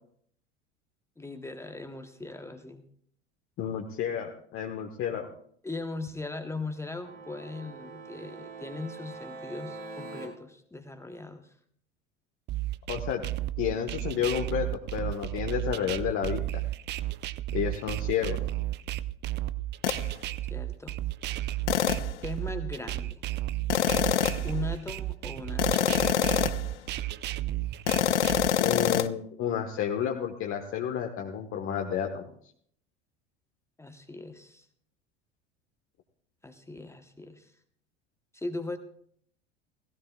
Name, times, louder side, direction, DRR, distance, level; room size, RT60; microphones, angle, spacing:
voice 1, 1.2-2.8 5.6-11.5 20.5-20.9 22.2-23.2 24.4-26.2 33.8-34.7 36.4-37.5 38.3-38.8, left 3 dB, 5° left, 7 dB, 1.0 m, -39 dB
voice 2, 3.6-5.3 12.9-13.2 13.6-16.6 17.5-18.4 28.6-32.3, left 8 dB, 35° left, 2 dB, 1.3 m, -31 dB
sound 1, 7.0-10.3, right 4 dB, 75° right, 5.4 m, -43 dB
sound 2, 12.5-28.5, right 15 dB, 30° right, 0.5 m, -33 dB
sound 3, 19.8-20.1 21.7-22.2 23.7-24.5 25.6-26.7 27.9-29.1, left 10 dB, 75° left, 0.7 m, -25 dB
18.0 x 17.0 x 2.3 m, 0.62 s
figure-of-eight pair, 75°, 36 cm